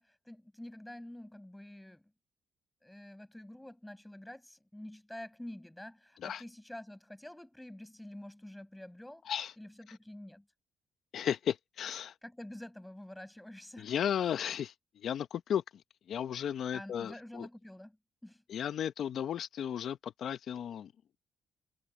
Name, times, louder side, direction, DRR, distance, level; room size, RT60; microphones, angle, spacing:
voice 1, 0.0-2.0 2.8-9.2 9.6-10.5 12.2-13.9 16.7-18.0 18.2-18.4, left 1 dB, 5° left, 6.0 m, -48 dB
voice 2, 11.1-12.1 13.8-15.8 16.1-17.5 18.5-20.9, left 9 dB, 65° left, 1.0 m, -35 dB
cardioid pair, 90°, 0 cm